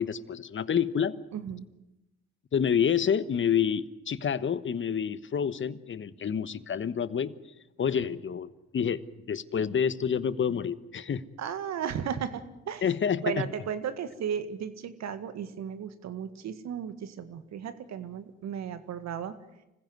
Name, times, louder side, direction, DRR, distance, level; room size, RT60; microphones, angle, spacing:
voice 1, 0.0-1.2 2.5-7.3 7.8-11.2 12.8-13.5, left 7 dB, 40° left, 16 dB, 1.2 m, -28 dB
voice 2, 1.3-1.6 11.4-12.8 13.2-19.4, right 8 dB, 60° right, 11 dB, 1.9 m, -35 dB
25.5 x 16.0 x 9.4 m, 0.93 s
hypercardioid pair, 55°, 30 cm